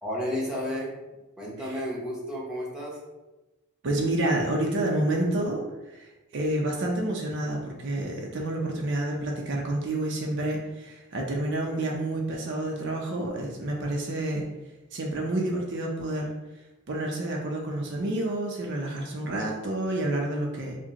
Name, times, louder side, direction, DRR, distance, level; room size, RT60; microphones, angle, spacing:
voice 1, 0.0-0.9 1.4-3.0, equal, 5° right, -5 dB, 0.9 m, -32 dB
voice 2, 3.8-5.6 5.9-14.4 14.9-16.3 16.9-20.8, right 1 dB, 60° right, 0 dB, 0.6 m, -29 dB
4.9 x 2.2 x 2.8 m, 1.1 s
head